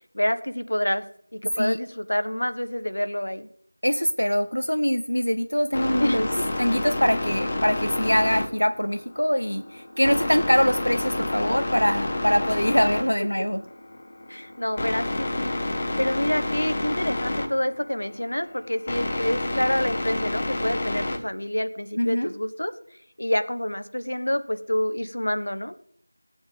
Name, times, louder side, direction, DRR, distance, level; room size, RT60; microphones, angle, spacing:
voice 1, 0.1-1.0 1.3-3.5 6.0-6.4 14.3-15.5 16.0-22.7 23.2-25.7, left 1 dB, 65° left, 11 dB, 1.2 m, -27 dB
voice 2, 3.8-6.3 6.6-13.6 22.0-22.3, equal, 85° left, 9 dB, 0.9 m, -23 dB
sound 1, 5.7-21.2, left 1 dB, 25° left, 1.0 m, -29 dB
15.5 x 9.4 x 5.1 m, 0.65 s
figure-of-eight pair, 175°, 0 cm